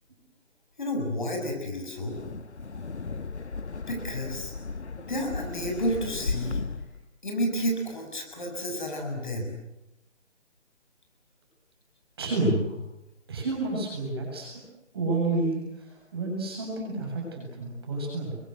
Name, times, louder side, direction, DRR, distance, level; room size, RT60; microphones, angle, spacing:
voice 1, 0.8-2.2 3.9-4.5 4.9-6.6 7.2-9.5, equal, 40° left, 2 dB, 6.6 m, -31 dB
Wind, 2.0-7.0, left 4 dB, 65° left, 1.6 m, -35 dB
voice 2, 12.2-12.7 13.3-14.6 14.9-18.4, right 2 dB, 20° right, -1 dB, 7.5 m, -29 dB
29.0 x 24.0 x 8.0 m, 0.88 s
hypercardioid pair, 180°, 37 cm